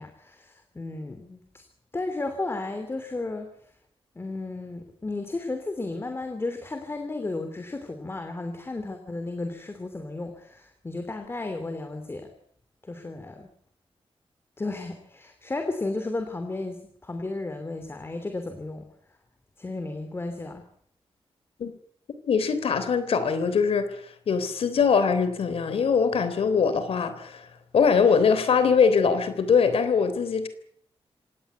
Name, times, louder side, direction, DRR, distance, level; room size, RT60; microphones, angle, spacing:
voice 1, 0.0-1.6 1.9-3.5 4.1-12.3 12.8-13.5 14.6-18.9 19.6-20.6, left 2 dB, 25° left, 2.9 m, -33 dB
voice 2, 22.3-24.0 24.3-27.4 27.7-30.5, left 6 dB, 85° left, 3.5 m, -22 dB
25.5 x 18.5 x 8.2 m
wide cardioid pair, 135°, 10 cm